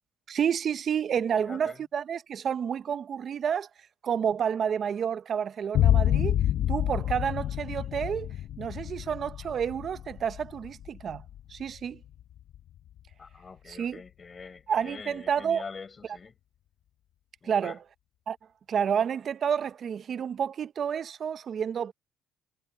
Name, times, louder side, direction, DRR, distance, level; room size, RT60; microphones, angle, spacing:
voice 1, 0.3-3.7 4.0-6.4 6.7-11.2 11.5-12.0 13.7-14.0 14.7-15.6 17.4-17.8 18.3-18.4 18.7-21.9, right 8 dB, 50° right, 0.6 m, -30 dB
voice 2, 1.3-1.8 13.2-16.3 17.4-17.8, left 5 dB, 35° left, 5.8 m, -44 dB
sound 1, 5.7-13.1, left 12 dB, 65° left, 0.5 m, -28 dB
supercardioid pair, 80°, 0 cm